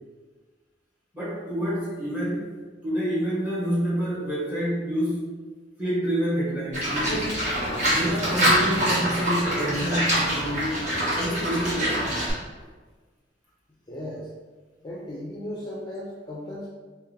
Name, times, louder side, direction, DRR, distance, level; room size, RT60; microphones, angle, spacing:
voice 1, 1.1-2.5 2.8-5.3 5.8-7.4 7.9-10.8 11.1-12.2, equal, 10° right, -8 dB, 1.3 m, -28 dB
Livestock farm animals working animals, 6.7-12.3, equal, 40° right, 1.4 m, -25 dB
voice 2, 13.9-14.3 14.8-16.7, left 1 dB, 25° left, -5 dB, 0.4 m, -36 dB
3.6 x 3.0 x 3.2 m, 1.4 s
head